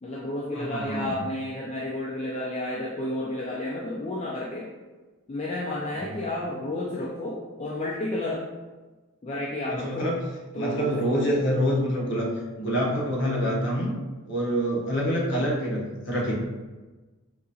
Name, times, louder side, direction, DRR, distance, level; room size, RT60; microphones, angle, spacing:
voice 1, 0.0-4.7 5.3-8.5 9.2-10.1 10.5-11.0 15.3-15.5, left 1 dB, 30° left, -5 dB, 0.3 m, -31 dB
voice 2, 0.5-1.1 9.7-10.2 10.5-12.3 12.6-13.9 14.2-16.3, equal, 55° left, -4 dB, 0.8 m, -26 dB
3.9 x 2.6 x 2.4 m, 1.2 s
head